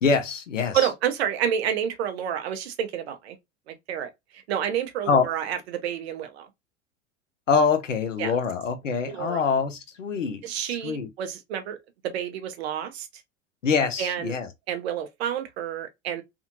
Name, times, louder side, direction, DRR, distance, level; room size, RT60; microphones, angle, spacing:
voice 1, 0.0-0.9 5.1-5.3 7.5-10.4 10.7-11.1 13.6-14.5, left 5 dB, 85° left, 0.7 m, -24 dB
voice 2, 0.7-3.4 3.7-6.5 8.2-8.3 9.1-9.4 10.4-11.8 12.0-13.1 14.0-14.4 14.7-16.2, right 9 dB, 55° right, 0.7 m, -29 dB
2.7 x 2.5 x 2.6 m
figure-of-eight pair, 85°, 37 cm